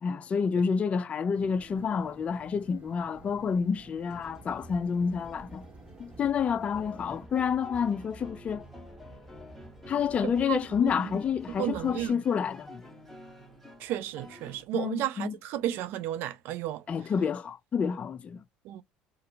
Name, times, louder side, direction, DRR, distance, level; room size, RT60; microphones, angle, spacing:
voice 1, 0.0-5.6 6.2-8.7 9.9-12.8 14.7-15.3 16.9-18.4, left 6 dB, 35° left, 0.4 m, -29 dB
sound 1, 1.3-7.3, right 2 dB, 40° right, 1.2 m, -52 dB
sound 2, 4.1-12.1, right 1 dB, 15° right, 1.7 m, -51 dB
sound 3, 6.7-14.7, left 1 dB, 5° left, 1.3 m, -49 dB
voice 2, 10.2-11.2 11.6-12.2 13.8-16.8 18.6-18.8, right 13 dB, 70° right, 0.4 m, -33 dB
2.7 x 2.4 x 2.8 m
supercardioid pair, 90°, 4 cm